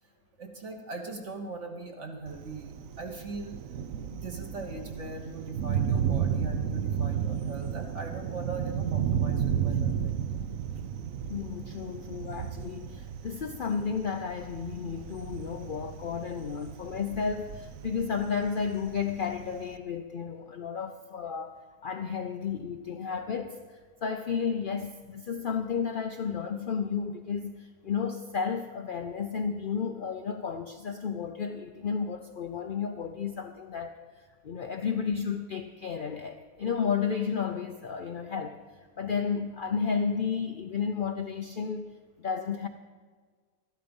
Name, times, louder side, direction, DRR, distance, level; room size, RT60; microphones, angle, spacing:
voice 1, 0.4-3.6 4.2-10.4, right 3 dB, 50° right, 2 dB, 1.5 m, -40 dB
Thunder, 2.3-19.8, right 8 dB, 65° right, 1.0 m, -33 dB
voice 2, 11.3-21.6 21.8-34.0 34.4-38.6 39.0-42.7, left 6 dB, 65° left, 5 dB, 0.5 m, -32 dB
12.5 x 12.0 x 5.3 m, 1.5 s
omnidirectional pair, 1.6 m